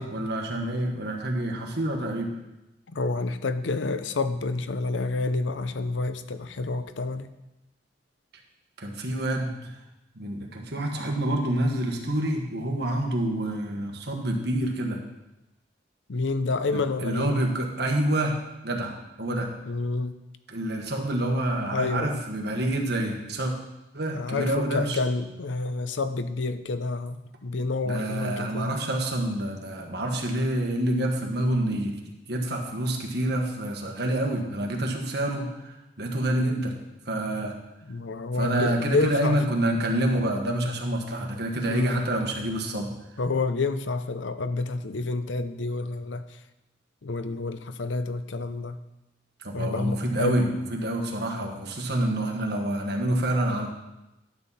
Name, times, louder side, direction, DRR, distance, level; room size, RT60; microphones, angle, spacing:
voice 1, 0.0-2.3 8.8-9.8 10.1-15.0 16.7-19.5 20.5-23.5 23.9-25.0 27.8-36.7 37.0-37.5 38.4-42.9 49.4-53.7, right 1 dB, 60° right, 1 dB, 1.6 m, -27 dB
voice 2, 2.9-7.3 16.1-17.4 19.7-20.2 21.7-22.1 24.1-28.7 37.9-39.4 41.7-42.0 43.2-46.4 47.0-48.8 49.5-50.4, left 3 dB, 85° left, 11 dB, 0.7 m, -29 dB
12.0 x 7.4 x 4.2 m, 0.96 s
head